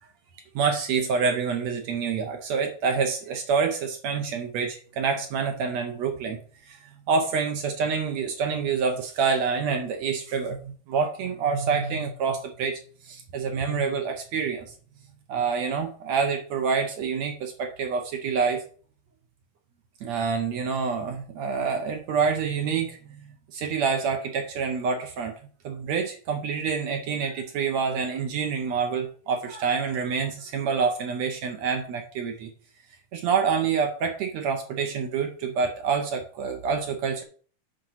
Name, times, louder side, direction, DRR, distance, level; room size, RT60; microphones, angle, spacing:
voice 1, 0.6-6.4 6.7-6.8 7.1-12.8 13.1-14.7 15.3-18.6 20.0-25.3 25.6-32.5 33.1-37.2, right 5 dB, 65° right, 4 dB, 1.8 m, -27 dB
8.1 x 4.4 x 5.7 m, 0.42 s
omnidirectional pair, 4.2 m